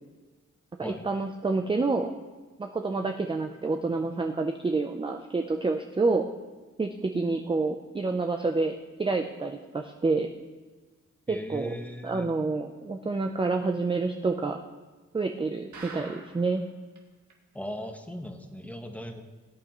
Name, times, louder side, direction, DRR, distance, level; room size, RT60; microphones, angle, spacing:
voice 1, 0.8-2.1 2.6-6.2 6.8-10.3 11.3-11.7 12.0-14.6 15.1-16.6, right 3 dB, 15° right, 5 dB, 0.5 m, -28 dB
voice 2, 11.3-12.3 17.5-19.2, equal, 5° left, 4 dB, 1.1 m, -38 dB
sound 1, 15.7-16.6 17.0-17.1 17.3-17.4 17.9-18.0, right 4 dB, 75° right, 1.9 m, -44 dB
18.0 x 8.6 x 3.0 m, 1.3 s
cardioid pair, 105°, 30 cm